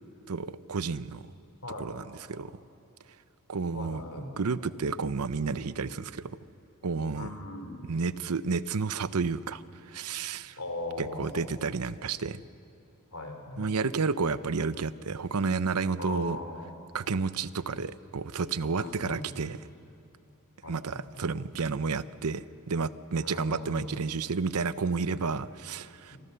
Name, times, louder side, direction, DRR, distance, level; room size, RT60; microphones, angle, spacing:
voice 1, 0.3-1.3 1.8-2.5 3.5-4.0 4.4-6.4 6.8-7.3 7.9-9.6 9.9-10.6 11.0-12.4 13.6-16.4 16.9-19.6 20.7-26.2, right 4 dB, 80° right, 15 dB, 0.7 m, -31 dB
voice 2, 1.6-1.9 3.7-4.3 7.1-7.8 10.6-11.8 13.1-13.8 16.0-16.7 18.7-19.3 20.6-21.2 23.2-24.0 26.1-26.2, left 2 dB, 75° left, 5 dB, 3.5 m, -39 dB
26.5 x 26.0 x 6.8 m, 2.7 s
head